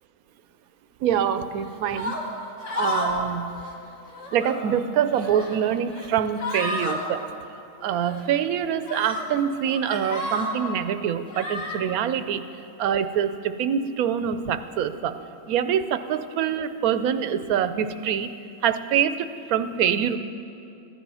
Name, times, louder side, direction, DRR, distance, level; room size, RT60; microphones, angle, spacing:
voice 1, 1.0-2.2 2.7-3.5 4.3-7.2 7.8-12.4 12.8-15.2 15.5-18.3 18.6-20.2, right 8 dB, 85° right, 11 dB, 1.1 m, -25 dB
sound 1, 1.9-2.2 2.6-3.2 3.5-3.7 4.1-4.6 5.1-5.6 5.9-6.1 6.4-7.0 8.0-8.2 8.8-9.2 9.7-10.5 11.3-11.8, left 2 dB, 60° left, 2.1 m, -31 dB
15.0 x 10.5 x 5.5 m, 2.7 s
omnidirectional pair, 1.5 m